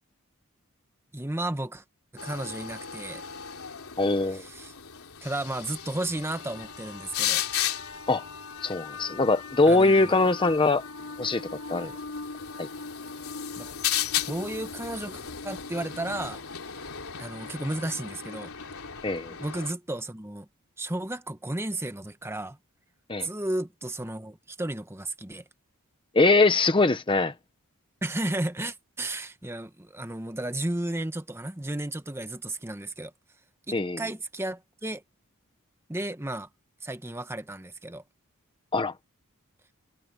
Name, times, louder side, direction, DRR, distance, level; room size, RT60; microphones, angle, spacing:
voice 1, 1.1-1.8 2.1-3.2 4.3-4.7 5.2-7.4 9.7-10.2 13.6-13.7 14.3-16.4 17.2-18.5 19.4-20.5 20.8-22.6 23.2-25.4 28.0-33.1 33.7-35.0 35.9-36.5 36.8-38.0, right 1 dB, 10° right, 1.1 m, -33 dB
sound 1, 2.2-19.7, left 9 dB, 75° left, 3.2 m, -35 dB
voice 2, 4.0-4.4 8.1-8.2 8.6-10.8 11.2-11.9 12.6-12.7 19.0-19.3 23.1-23.3 26.1-27.3 33.7-34.0 38.7-38.9, left 3 dB, 20° left, 0.7 m, -22 dB
head